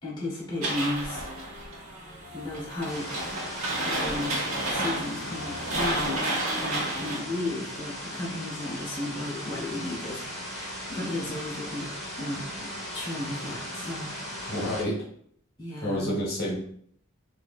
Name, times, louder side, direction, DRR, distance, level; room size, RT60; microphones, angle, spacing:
voice 1, 0.0-1.3 2.3-3.1 3.8-11.9 12.2-14.8 15.6-16.1, left 1 dB, 20° left, -6 dB, 1.0 m, -34 dB
sound 1, 0.6-7.2, right 1 dB, 80° right, 1.1 m, -31 dB
sound 2, 2.9-14.8, equal, ahead, 1.2 m, -38 dB
voice 2, 14.5-15.0 15.8-16.6, equal, 50° left, -4 dB, 1.0 m, -29 dB
4.0 x 2.5 x 2.4 m, 0.63 s
head